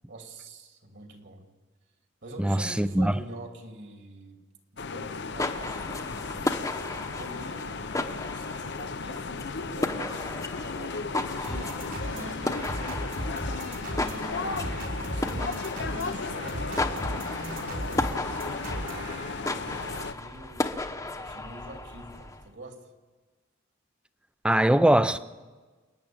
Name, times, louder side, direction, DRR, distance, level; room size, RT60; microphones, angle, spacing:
voice 1, 0.1-1.4 2.2-4.4 4.7-6.5 6.9-11.9 13.6-22.9, right 1 dB, 60° right, 2.8 m, -46 dB
voice 2, 2.4-3.2 24.4-25.2, right 1 dB, 5° right, 0.5 m, -22 dB
sound 1, 4.8-20.1, left 4 dB, 60° left, 0.7 m, -35 dB
sound 2, 5.1-22.5, left 2 dB, 15° left, 1.0 m, -35 dB
sound 3, 11.4-19.7, right 1 dB, 80° right, 3.8 m, -36 dB
29.5 x 10.0 x 8.8 m
head